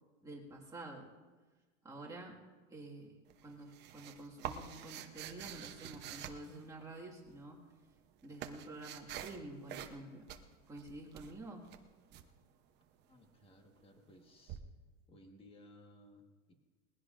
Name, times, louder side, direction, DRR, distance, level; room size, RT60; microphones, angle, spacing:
voice 1, 0.2-1.1 1.8-2.4 2.7-7.7 8.2-10.3 10.7-11.7, right 2 dB, 10° right, -3 dB, 1.9 m, -49 dB
sound 1, 3.3-7.1 7.8-9.4 9.7-10.0 10.3-12.3 14.5-14.6, right 10 dB, 25° right, 0.9 m, -47 dB
voice 2, 13.1-14.6 15.1-16.5, left 1 dB, 15° left, 4 dB, 1.5 m, -60 dB
21.0 x 15.5 x 2.6 m, 1.3 s
supercardioid pair, 155°, 39 cm